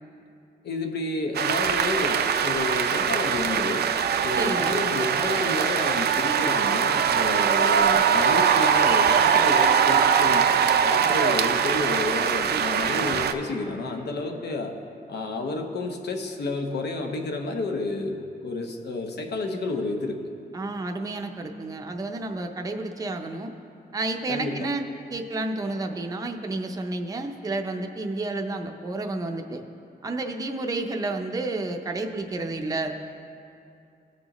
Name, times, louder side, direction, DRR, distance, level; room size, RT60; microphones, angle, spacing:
voice 1, 0.6-3.9 4.2-10.5 10.8-14.7 15.1-20.2 24.3-24.7, left 3 dB, 90° left, 3 dB, 0.9 m, -30 dB
sound 1, 1.3-13.3, right 7 dB, 75° right, 0.4 m, -22 dB
voice 2, 4.3-4.8 20.5-23.5 23.9-24.8 25.1-29.6 30.0-33.0, right 2 dB, 20° right, 4 dB, 0.5 m, -30 dB
17.5 x 6.2 x 3.0 m, 2.6 s
wide cardioid pair, 175°, 17 cm